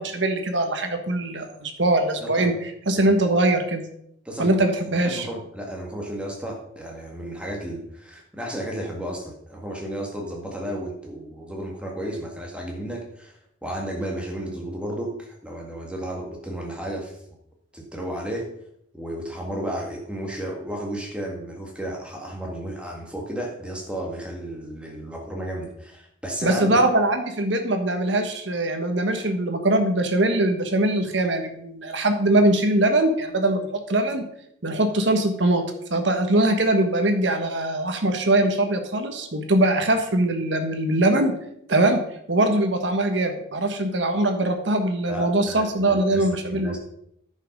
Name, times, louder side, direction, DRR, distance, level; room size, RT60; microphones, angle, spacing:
voice 1, 0.0-2.5 2.9-3.8 4.4-5.3 26.4-34.2 34.6-35.6 35.9-41.3 41.7-42.0 42.3-46.8, right 1 dB, 70° right, 5 dB, 1.3 m, -22 dB
voice 2, 2.2-2.5 3.1-3.2 4.3-4.5 5.0-17.2 17.7-18.5 18.9-26.8 45.1-46.8, right 1 dB, 5° right, 0 dB, 1.8 m, -33 dB
9.9 x 5.6 x 5.4 m, 0.74 s
head